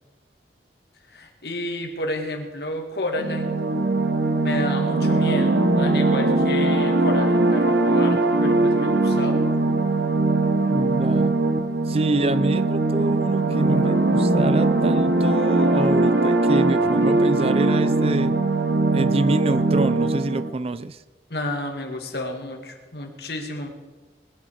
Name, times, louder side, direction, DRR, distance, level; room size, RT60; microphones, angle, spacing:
voice 1, 1.1-3.6 4.4-9.4 21.3-23.7, left 1 dB, 65° left, 3 dB, 2.2 m, -31 dB
sound 1, 3.1-20.5, right 2 dB, 75° right, 1.2 m, -20 dB
voice 2, 10.7-11.4 11.9-18.4 18.9-21.0, right 2 dB, 35° right, 15 dB, 0.4 m, -26 dB
20.5 x 10.5 x 5.0 m, 1.3 s
head